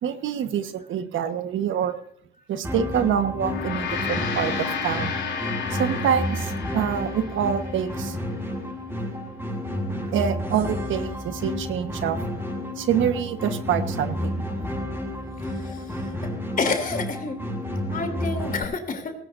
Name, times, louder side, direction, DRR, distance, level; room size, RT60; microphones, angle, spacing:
voice 1, 0.0-2.0 2.5-5.1 5.7-8.2 10.1-12.2 12.8-14.4, right 8 dB, 75° right, 9 dB, 1.4 m, -26 dB
sound 1, 2.6-18.6, equal, 10° right, 6.7 m, -31 dB
Gong, 3.3-8.0, left 6 dB, 70° left, 4.1 m, -32 dB
voice 2, 15.5-16.1 16.6-17.4 17.9-19.1, left 4 dB, 45° left, 6 dB, 3.2 m, -29 dB
19.0 x 18.0 x 2.7 m, 0.67 s
cardioid pair, 90°, 20 cm